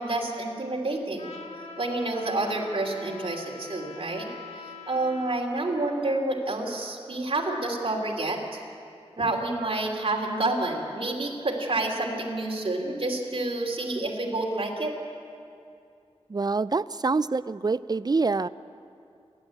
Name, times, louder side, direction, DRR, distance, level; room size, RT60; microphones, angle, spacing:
voice 1, 0.0-1.4 1.8-4.3 4.6-8.6 9.2-15.0, right 2 dB, 55° right, -1 dB, 3.2 m, -29 dB
Trumpet, 1.2-5.4, left 3 dB, 80° left, 1.9 m, -43 dB
voice 2, 16.3-18.5, right 4 dB, 40° right, 16 dB, 0.4 m, -26 dB
29.5 x 11.5 x 8.5 m, 2.5 s
wide cardioid pair, 80°, 11 cm